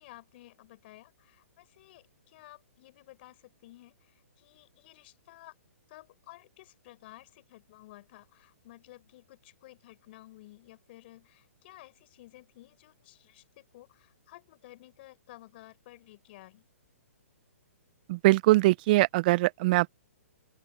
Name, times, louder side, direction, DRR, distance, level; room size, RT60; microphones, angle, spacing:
voice 1, 0.0-5.6 5.9-16.7, left 17 dB, 45° left, 4.9 m, -54 dB
voice 2, 18.1-19.9, right 19 dB, 35° right, 0.4 m, -22 dB
open air
hypercardioid pair, 145°, 8 cm